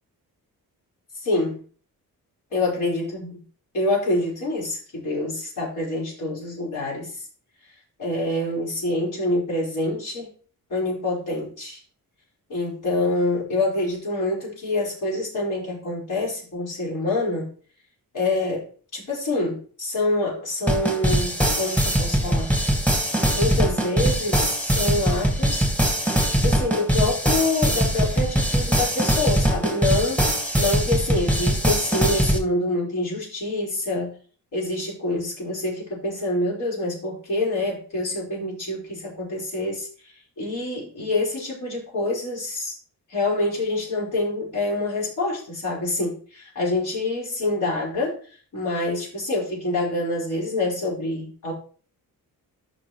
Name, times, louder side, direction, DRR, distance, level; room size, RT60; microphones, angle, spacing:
voice 1, 1.2-1.6 2.5-3.4 3.7-7.3 8.0-10.3 10.7-11.8 12.5-17.5 18.1-18.7 18.9-22.6 23.3-25.7 26.4-34.1 34.5-39.9 40.4-42.7 43.1-48.2 48.5-51.5, left 2 dB, 55° left, -4 dB, 5.0 m, -26 dB
sound 1, 20.7-32.4, right 1 dB, 5° left, 1.8 m, -22 dB
11.0 x 6.0 x 3.1 m, 0.41 s
wide cardioid pair, 145°, 36 cm